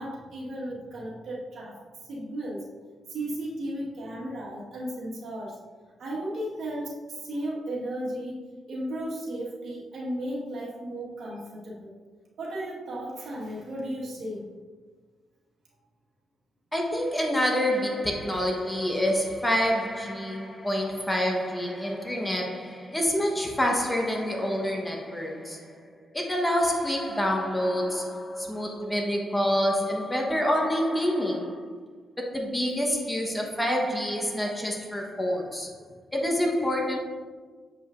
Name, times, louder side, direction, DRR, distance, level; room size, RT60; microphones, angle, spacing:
voice 1, 0.0-1.8 2.0-2.6 3.1-5.6 6.0-8.4 8.7-11.9 12.4-14.4 35.9-36.0, right 1 dB, 65° right, 1.6 m, -35 dB
voice 2, 16.7-31.8 32.2-35.7 36.1-37.0, equal, 10° left, 1.2 m, -27 dB
7.5 x 5.0 x 2.6 m
cardioid pair, 85°, 0 cm